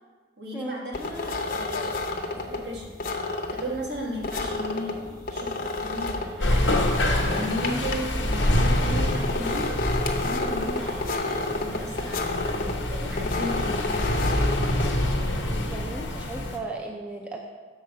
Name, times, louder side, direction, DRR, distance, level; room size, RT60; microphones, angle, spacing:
voice 1, 0.4-3.0 3.5-6.9 7.2-9.8 10.2-13.9, equal, 65° right, -2 dB, 1.4 m, -35 dB
sound 1, 0.9-15.3, left 2 dB, 50° left, 0.7 m, -31 dB
sound 2, 6.4-16.6, left 1 dB, 90° left, 1.0 m, -26 dB
voice 2, 15.7-17.4, right 2 dB, 5° right, 0 dB, 0.4 m, -36 dB
6.8 x 4.8 x 5.5 m, 1.4 s
head